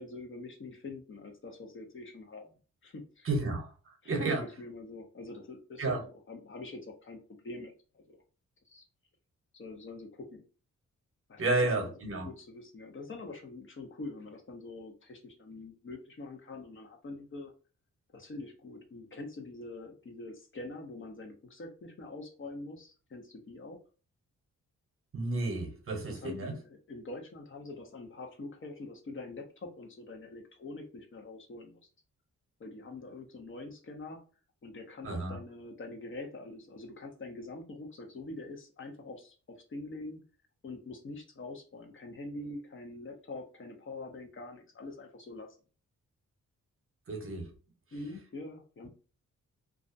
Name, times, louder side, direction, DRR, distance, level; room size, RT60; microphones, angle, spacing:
voice 1, 0.0-2.6 2.8-3.3 4.0-8.2 8.7-8.8 9.5-10.4 11.3-11.4 11.8-17.5 18.1-23.8 26.1-31.8 32.6-34.2 34.6-39.4 39.7-40.2 40.6-45.5 47.9-48.9, left 2 dB, 40° left, 0.6 m, -44 dB
voice 2, 3.2-3.7 4.1-4.4 5.8-6.0 11.4-12.3 25.1-26.5 35.0-35.4 47.1-47.5, right 2 dB, 45° right, 0.8 m, -31 dB
2.4 x 2.1 x 2.5 m
cardioid pair, 90°, 30 cm